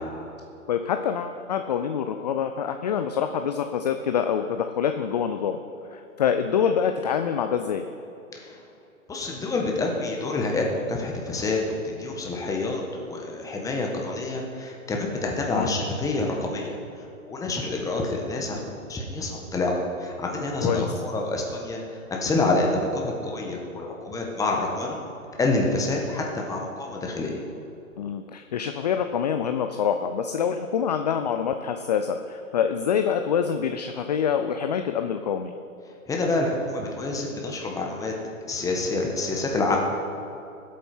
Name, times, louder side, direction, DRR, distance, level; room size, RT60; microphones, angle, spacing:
voice 1, 0.7-5.6 5.9-7.8 15.5-15.8 20.6-20.9 28.0-35.5, left 7 dB, 30° left, 7 dB, 0.4 m, -26 dB
voice 2, 9.1-16.7 17.2-18.6 18.9-25.0 25.4-27.4 36.1-38.1 38.5-39.8, left 2 dB, 10° left, 0 dB, 1.4 m, -27 dB
20.0 x 8.3 x 4.4 m, 2.7 s
hypercardioid pair, 130°, 41 cm